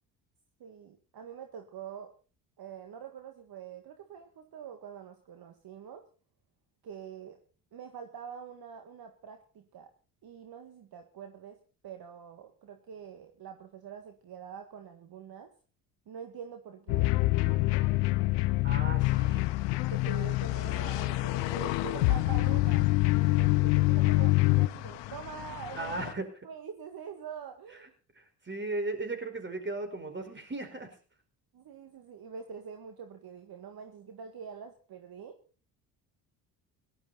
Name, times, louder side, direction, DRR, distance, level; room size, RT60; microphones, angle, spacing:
voice 1, 0.6-2.1 2.6-6.0 6.8-7.4 7.7-9.9 10.2-11.6 11.8-15.5 16.1-17.1 18.8-19.0 19.9-26.1 26.4-27.9 31.5-35.4, right 7 dB, 50° right, 5 dB, 1.9 m, -45 dB
sound 1, 16.9-24.7, left 20 dB, 80° left, 0.9 m, -26 dB
voice 2, 18.6-19.4 25.7-26.3 28.1-31.0, right 2 dB, 25° right, 7 dB, 4.9 m, -36 dB
sound 2, 19.0-26.1, left 15 dB, 65° left, 1.3 m, -40 dB
17.5 x 12.5 x 4.2 m, 0.36 s
hypercardioid pair, 60°, 46 cm